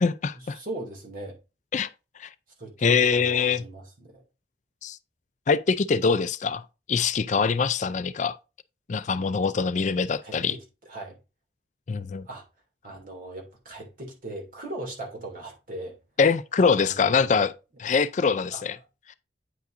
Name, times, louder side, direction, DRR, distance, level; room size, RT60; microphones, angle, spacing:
voice 1, 0.0-0.6 1.7-1.9 2.2-2.3 2.8-3.6 4.8-5.0 5.5-6.6 6.9-8.4 8.9-10.6 11.9-12.3 16.2-17.5 17.8-18.8, left 5 dB, 45° left, 0.4 m, -23 dB
voice 2, 0.5-1.4 2.6-4.2 10.2-11.1 12.3-12.4 12.8-16.0 16.8-17.5 18.5-18.6, right 2 dB, 50° right, 2.4 m, -39 dB
9.2 x 5.5 x 2.6 m
head